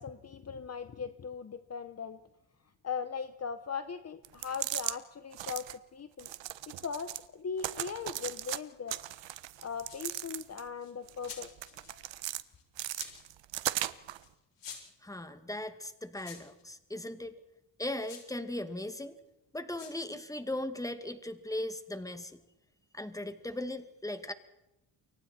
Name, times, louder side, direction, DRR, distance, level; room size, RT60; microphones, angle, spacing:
voice 1, 0.0-2.2 2.8-6.3 6.7-9.0 9.6-11.5 11.9-12.1, left 6 dB, 35° left, 10 dB, 1.2 m, -39 dB
sound 1, 4.2-5.0 5.3-5.8 6.2-7.3 7.6-8.6 8.9-10.7 11.1-12.4 12.8-14.2, right 13 dB, 75° right, 1.3 m, -37 dB
sound 2, 9.9-10.3 10.8-11.9 12.5-13.3 14.2-14.3 14.6-15.0 16.1-16.6 18.0-18.3 19.7-20.0, left 7 dB, 70° left, 7.6 m, -48 dB
voice 2, 15.0-17.3 17.8-19.2 19.5-22.4 22.9-24.3, left 1 dB, 5° left, 9 dB, 2.3 m, -38 dB
29.5 x 23.5 x 4.5 m, 0.90 s
cardioid pair, 110°, 45 cm